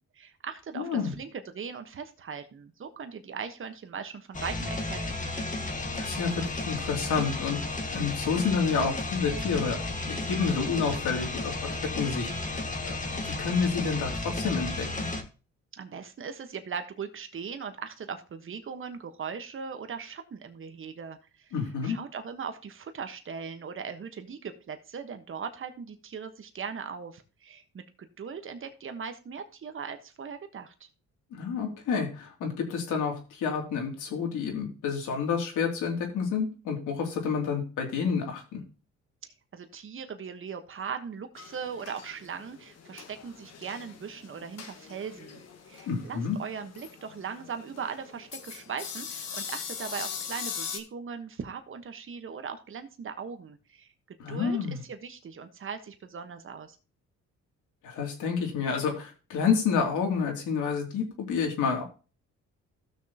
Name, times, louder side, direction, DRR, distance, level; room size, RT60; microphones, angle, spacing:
voice 1, 0.0-5.1 15.8-21.5 21.8-27.8 28.2-30.9 39.2-53.9 54.3-54.6 54.8-56.8, right 6 dB, 45° right, 8 dB, 1.3 m, -39 dB
voice 2, 0.7-1.1 5.9-7.6 7.9-9.8 10.1-15.1 21.5-22.0 31.3-38.6 45.9-46.4 54.2-54.8 57.8-61.8, left 6 dB, 85° left, 2 dB, 2.8 m, -29 dB
sound 1, 4.3-15.2, left 2 dB, 25° left, 1.8 m, -33 dB
sound 2, 41.4-50.8, left 7 dB, 60° left, 1.6 m, -41 dB
15.5 x 6.4 x 2.9 m, 0.34 s
cardioid pair, 90°, 30 cm